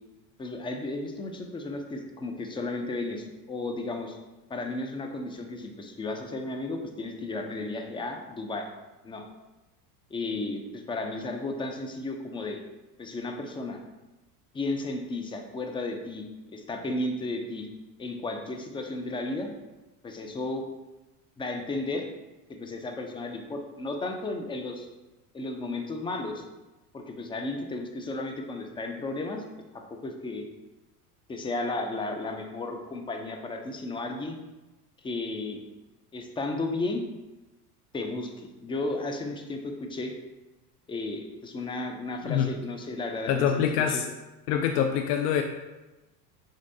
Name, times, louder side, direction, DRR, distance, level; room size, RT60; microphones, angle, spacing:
voice 1, 0.4-4.2 4.5-8.7 9.0-9.3 10.1-12.6 13.0-13.8 14.5-16.3 16.5-17.7 18.0-19.5 20.0-20.6 21.4-22.1 22.5-24.9 25.3-26.4 26.9-29.4 29.7-30.4 31.3-34.4 35.0-35.6 36.1-37.0 37.9-38.3 38.6-40.2 40.9-44.0, left 2 dB, 10° left, 4 dB, 0.3 m, -34 dB
voice 2, 43.3-44.1 44.5-45.4, left 8 dB, 75° left, 5 dB, 0.5 m, -25 dB
5.2 x 3.7 x 2.6 m, 1.1 s
hypercardioid pair, 85°, 47 cm